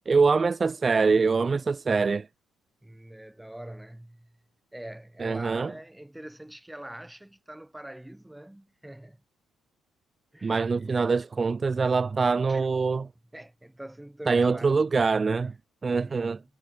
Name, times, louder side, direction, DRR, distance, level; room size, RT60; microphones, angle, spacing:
voice 1, 0.1-2.3 5.2-5.7 10.4-13.1 14.3-15.5 15.8-16.4, right 4 dB, 30° right, 0.5 m, -24 dB
voice 2, 2.8-4.4 4.7-9.2 10.3-11.2 12.5-12.7 13.3-14.9 15.9-16.4, right 1 dB, 5° right, 5.8 m, -44 dB
supercardioid pair, 75°, 0 cm